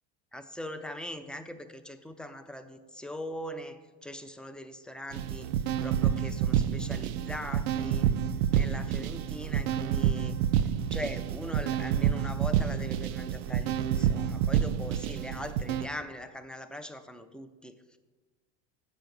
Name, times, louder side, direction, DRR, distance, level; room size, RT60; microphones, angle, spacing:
voice 1, 0.3-5.5 5.8-8.1 8.5-10.4 10.9-18.0, left 1 dB, 5° left, 8 dB, 0.4 m, -41 dB
sound 1, 5.1-15.9, right 9 dB, 85° right, 0.5 m, -28 dB
7.5 x 5.9 x 5.2 m, 1.3 s
supercardioid pair, 110°, 32 cm